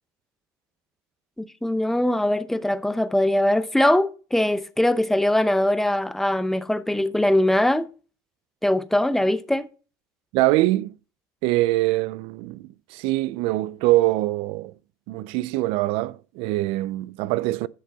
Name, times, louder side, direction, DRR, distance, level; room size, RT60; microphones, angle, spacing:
voice 1, 1.4-7.9 8.6-9.7, left 1 dB, 5° left, 0.7 m, -22 dB
voice 2, 10.3-10.9 11.4-14.7 15.1-17.7, right 18 dB, 75° right, 0.5 m, -23 dB
10.5 x 6.6 x 4.1 m
supercardioid pair, 105°, 10 cm